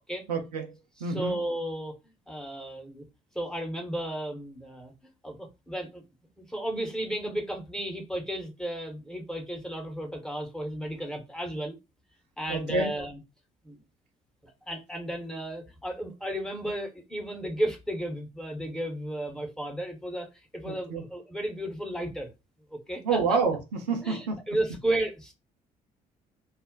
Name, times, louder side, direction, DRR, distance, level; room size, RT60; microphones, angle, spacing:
voice 1, 0.3-0.8 1.0-1.4 12.5-12.9 20.7-21.0 23.0-24.4, right 4 dB, 85° right, 0.6 m, -28 dB
voice 2, 1.0-2.0 2.3-3.0 3.3-4.9 5.2-6.0 6.4-11.7 12.4-13.2 13.6-13.8 14.4-20.3 20.5-22.3 22.7-23.4 24.0-25.3, right 1 dB, 5° left, 1.1 m, -33 dB
2.4 x 2.1 x 3.8 m
figure-of-eight pair, 50°, 20 cm